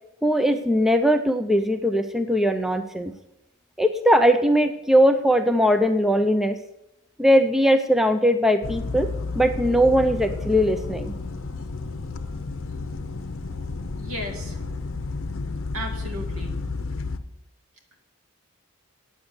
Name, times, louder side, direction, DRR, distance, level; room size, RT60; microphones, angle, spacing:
voice 1, 0.2-3.1 3.8-6.6 7.2-9.1 9.3-11.1, equal, ahead, 8 dB, 0.4 m, -20 dB
sound 1, 8.6-17.2, left 3 dB, 65° left, 0.8 m, -32 dB
voice 2, 14.0-14.6 15.7-16.6, equal, 80° right, 3 dB, 2.2 m, -34 dB
9.0 x 8.0 x 7.0 m, 0.90 s
head